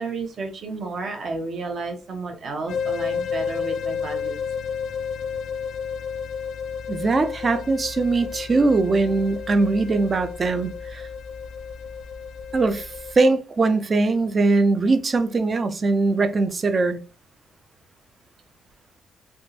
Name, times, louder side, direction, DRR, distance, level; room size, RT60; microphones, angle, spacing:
voice 1, 0.0-4.4, right 3 dB, 55° right, 1.1 m, -31 dB
sound 1, 2.7-13.2, left 6 dB, 75° left, 0.4 m, -31 dB
voice 2, 6.9-11.1 12.5-17.0, right 3 dB, 35° right, 0.5 m, -21 dB
3.6 x 2.5 x 2.7 m
cardioid pair, 90°, 0 cm